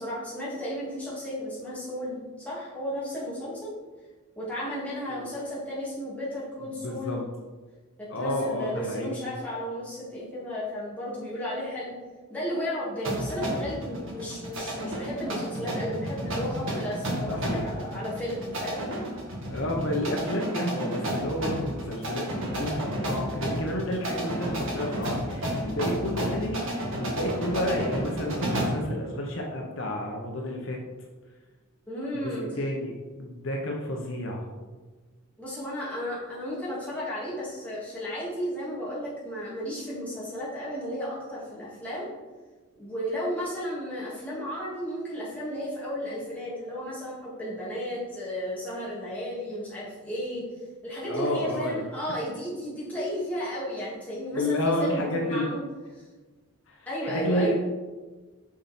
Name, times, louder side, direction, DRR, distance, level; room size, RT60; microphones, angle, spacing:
voice 1, 0.0-3.7 4.4-7.2 8.0-11.9 12.3-18.8 31.9-32.5 35.4-42.2 42.8-50.4 50.8-55.6 56.9-57.5, equal, 5° left, -8 dB, 2.4 m, -34 dB
voice 2, 6.8-7.2 8.1-9.2 17.3-17.6 19.5-26.7 27.0-30.8 32.2-34.4 51.1-51.8 54.3-55.5 56.7-57.5, left 1 dB, 60° left, 0 dB, 0.9 m, -30 dB
sound 1, 13.0-28.9, equal, 60° right, 1.8 m, -32 dB
6.4 x 5.7 x 4.3 m, 1.3 s
head